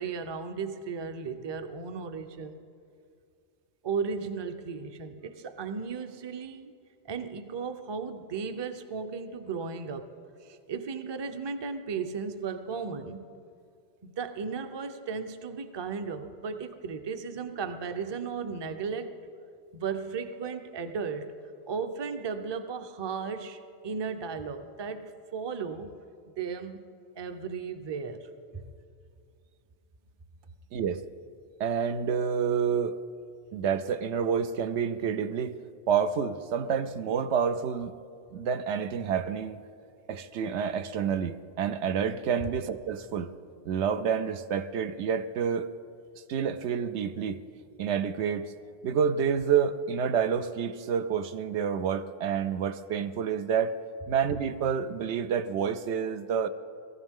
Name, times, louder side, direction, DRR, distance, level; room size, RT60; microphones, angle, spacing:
voice 1, 0.0-2.6 3.8-6.7 7.1-10.1 10.4-13.2 14.0-19.1 19.7-21.3 21.7-25.9 26.4-26.8 27.2-28.7, right 5 dB, 30° right, 9 dB, 0.5 m, -35 dB
voice 2, 31.6-33.0 33.5-35.6 35.9-37.9 38.3-39.6 40.1-43.3 43.6-45.7 46.3-47.4 47.8-48.5 48.8-53.7 54.1-56.5, right 7 dB, 85° right, 10 dB, 0.9 m, -28 dB
18.5 x 14.5 x 3.6 m, 2.4 s
omnidirectional pair, 1.1 m